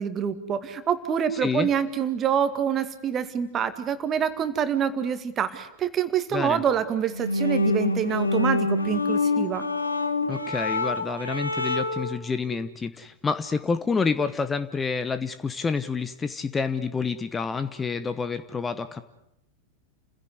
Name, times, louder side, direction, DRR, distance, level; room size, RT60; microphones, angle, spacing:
voice 1, 0.0-9.6, right 8 dB, 25° right, 11 dB, 2.1 m, -26 dB
voice 2, 1.3-1.7 6.3-6.6 10.3-19.0, left 5 dB, 15° left, 12 dB, 1.0 m, -28 dB
sound 1, 7.1-12.2, left 2 dB, 80° left, 1.8 m, -26 dB
30.0 x 16.5 x 9.6 m, 0.84 s
figure-of-eight pair, 90°, 0 cm